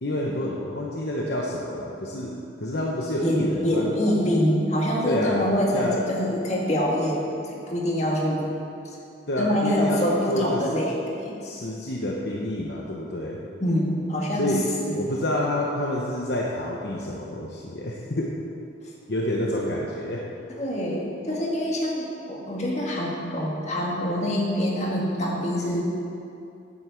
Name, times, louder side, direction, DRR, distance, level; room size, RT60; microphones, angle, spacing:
voice 1, 0.0-3.9 5.0-5.4 5.7-6.0 9.3-10.0 10.3-10.8 11.4-13.4 14.3-14.6 14.9-18.4 19.1-20.2, left 1 dB, 60° left, -2 dB, 1.0 m, -28 dB
voice 2, 3.2-7.2 7.7-8.4 8.8-9.0 9.4-10.9 11.2-11.4 13.6-14.6 14.8-14.9 20.6-25.8, equal, 35° left, -3 dB, 1.9 m, -25 dB
9.9 x 7.6 x 6.9 m, 2.7 s
head